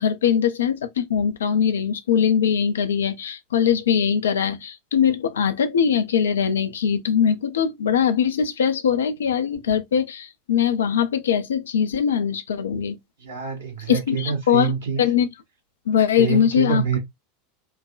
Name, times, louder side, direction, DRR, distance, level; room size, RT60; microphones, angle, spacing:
voice 1, 0.0-13.0 13.9-14.7 15.0-15.3 15.9-16.8, left 8 dB, 70° left, 0.5 m, -21 dB
voice 2, 13.2-15.0 16.2-17.0, right 7 dB, 70° right, 1.6 m, -26 dB
4.6 x 2.2 x 2.4 m
figure-of-eight pair, 80°, 0 cm